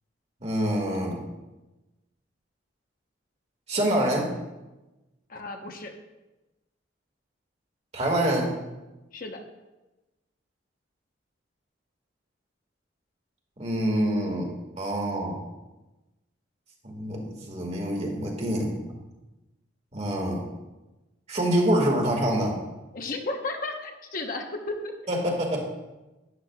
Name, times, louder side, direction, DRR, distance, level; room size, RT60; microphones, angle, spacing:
voice 1, 0.4-1.2 3.7-4.3 7.9-8.5 13.6-15.4 16.8-18.7 19.9-20.5 21.3-22.6 25.1-25.7, right 1 dB, 35° right, 0 dB, 1.9 m, -26 dB
voice 2, 5.3-5.9 9.1-9.4 22.9-24.9, left 2 dB, 45° left, 3 dB, 1.0 m, -33 dB
12.0 x 10.5 x 2.4 m, 1.1 s
head